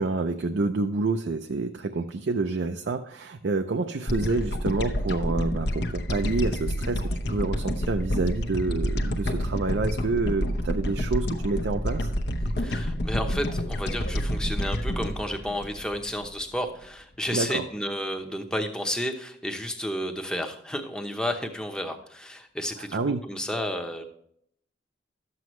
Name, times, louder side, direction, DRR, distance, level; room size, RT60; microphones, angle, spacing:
voice 1, 0.0-12.1 17.3-17.6 22.8-23.2, right 3 dB, 65° right, 6 dB, 0.5 m, -28 dB
sound 1, 4.1-16.5, equal, 55° left, 0.8 m, -28 dB
voice 2, 12.6-24.0, equal, 5° left, 4 dB, 0.8 m, -32 dB
12.5 x 7.8 x 3.1 m, 0.70 s
head